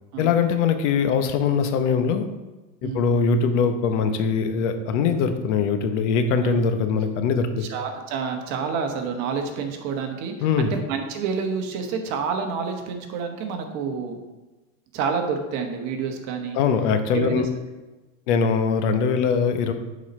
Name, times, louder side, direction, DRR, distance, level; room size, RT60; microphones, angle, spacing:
voice 1, 0.2-2.3 2.8-7.7 10.4-10.7 16.5-17.5 18.3-19.7, left 6 dB, 60° left, 8 dB, 0.9 m, -22 dB
voice 2, 2.8-3.2 6.4-6.6 7.6-14.2 14.9-16.6 17.1-17.4, right 5 dB, 45° right, 5 dB, 1.2 m, -28 dB
7.4 x 4.1 x 5.4 m, 1.2 s
supercardioid pair, 140°, 40 cm